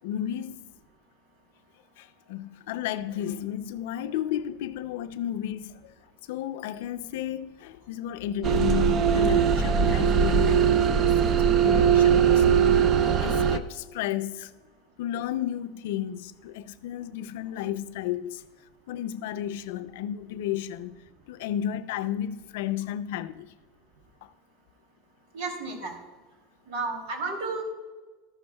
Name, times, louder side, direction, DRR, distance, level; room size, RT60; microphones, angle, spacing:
voice 1, 0.0-0.6 2.0-5.9 6.3-12.6 13.0-14.5 15.0-18.4 18.9-21.0 21.3-23.5, left 11 dB, 75° left, 0.5 m, -33 dB
sound 1, 8.4-13.6, right 7 dB, 35° right, 0.5 m, -21 dB
voice 2, 25.3-25.9 26.7-27.6, right 3 dB, 75° right, 2.7 m, -32 dB
13.0 x 11.5 x 2.3 m
supercardioid pair, 155°, 0 cm